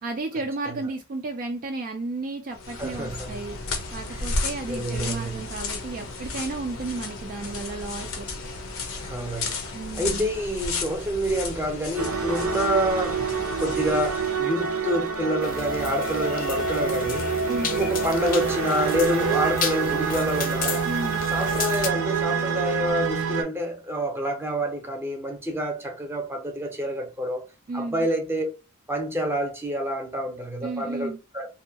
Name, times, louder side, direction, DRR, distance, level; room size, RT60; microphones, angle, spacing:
voice 1, 0.0-3.6 3.9-8.3 9.7-10.4 17.5-17.9 20.8-21.3 27.7-28.1 30.6-31.2, right 3 dB, 40° right, 0.3 m, -33 dB
sound 1, 2.5-14.4, left 3 dB, 90° left, 0.6 m, -34 dB
voice 2, 2.8-3.4 4.1-4.3 4.7-5.4 9.0-9.7 9.9-13.2 13.6-17.4 17.7-20.9 21.3-27.4 27.7-28.5 28.9-31.5, equal, 10° right, 0.7 m, -28 dB
sound 2, 12.0-23.4, right 5 dB, 90° right, 0.6 m, -27 dB
sound 3, 15.4-21.9, left 6 dB, 40° left, 0.5 m, -33 dB
2.7 x 2.2 x 2.7 m
head